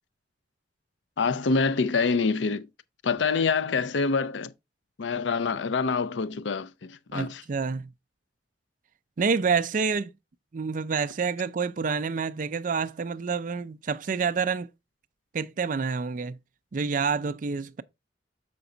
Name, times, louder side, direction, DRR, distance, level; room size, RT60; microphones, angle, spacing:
voice 1, 1.2-2.7 3.0-4.5 5.0-7.4, left 4 dB, 90° left, 0.5 m, -26 dB
voice 2, 7.1-7.9 9.2-10.1 10.5-14.7 15.3-16.4 16.7-17.8, right 5 dB, 45° right, 0.4 m, -28 dB
6.9 x 5.2 x 3.8 m
head